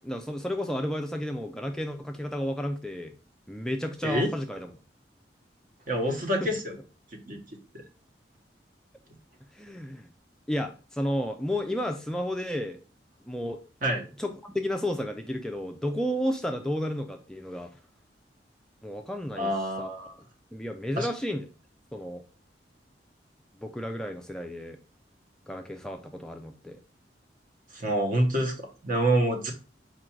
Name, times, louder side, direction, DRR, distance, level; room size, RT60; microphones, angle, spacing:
voice 1, 0.0-3.1 3.5-4.7 6.4-6.5 9.5-10.1 10.5-12.8 13.3-13.6 14.2-17.7 18.8-19.9 20.5-21.5 21.9-22.2 23.6-24.8 25.5-26.8, equal, 5° left, 3 dB, 0.3 m, -32 dB
voice 2, 5.9-6.7 7.3-7.4 13.8-14.0 19.4-20.1 21.0-21.1 27.7-29.5, right 1 dB, 50° right, 3 dB, 1.0 m, -27 dB
4.6 x 2.5 x 4.3 m, 0.34 s
head